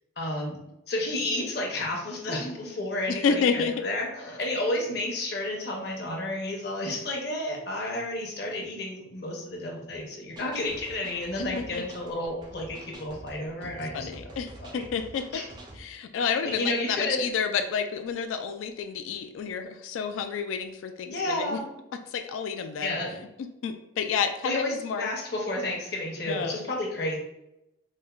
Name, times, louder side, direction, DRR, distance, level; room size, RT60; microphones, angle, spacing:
voice 1, 0.2-0.6 0.9-14.1 14.6-14.8 15.3-15.4 16.4-17.2 21.1-21.6 22.8-23.2 24.4-27.2, left 1 dB, 55° left, 0 dB, 0.7 m, -31 dB
voice 2, 3.1-3.8 11.4-11.8 13.6-15.4 15.7-21.6 22.1-23.0 23.6-25.1 26.3-26.6, left 6 dB, 90° left, 7 dB, 0.3 m, -30 dB
sound 1, 10.4-15.8, right 1 dB, 20° right, 0.3 m, -46 dB
4.1 x 2.1 x 2.3 m, 0.87 s
head